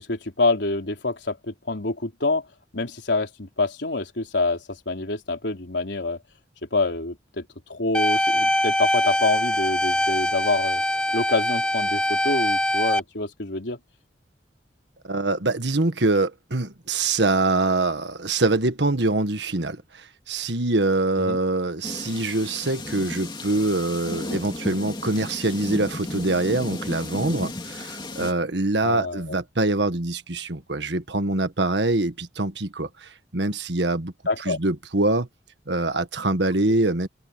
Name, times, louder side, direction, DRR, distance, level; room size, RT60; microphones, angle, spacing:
voice 1, 0.0-2.5 2.7-6.2 6.7-7.4 7.7-10.8 11.1-13.8 21.2-21.4 28.8-29.2 34.3-34.6, left 3 dB, 75° left, 3.8 m, -26 dB
sound 1, 7.9-13.0, left 1 dB, 5° left, 0.3 m, -23 dB
voice 2, 15.0-35.3 35.7-37.1, right 2 dB, 75° right, 1.6 m, -24 dB
sound 2, 21.8-28.3, left 1 dB, 25° left, 2.6 m, -34 dB
head